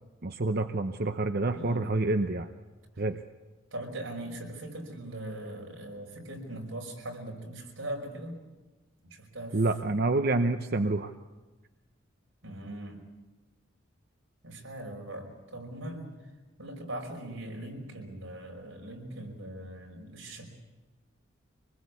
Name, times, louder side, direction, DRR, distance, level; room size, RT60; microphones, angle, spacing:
voice 1, 0.2-2.5 3.0-3.2 9.5-11.1, right 2 dB, 50° right, 8 dB, 0.8 m, -28 dB
voice 2, 3.7-8.3 9.0-10.0 12.4-13.0 14.4-16.1 16.6-20.5, right 1 dB, 90° right, 1 dB, 5.4 m, -40 dB
25.0 x 20.5 x 8.4 m, 1.2 s
head